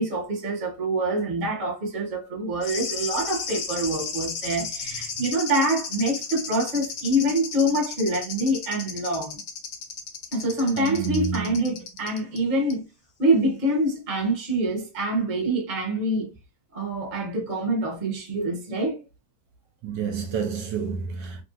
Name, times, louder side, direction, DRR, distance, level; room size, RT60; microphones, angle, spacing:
voice 1, 0.0-9.4 10.3-12.8 13.2-16.3 16.7-19.0, right 1 dB, 35° right, 0.8 m, -25 dB
sound 1, 2.6-12.4 12.7-12.8, left 5 dB, 75° left, 0.6 m, -34 dB
voice 2, 10.8-11.6 19.8-21.4, right 6 dB, 75° right, 1.2 m, -29 dB
3.0 x 2.6 x 2.5 m
omnidirectional pair, 2.1 m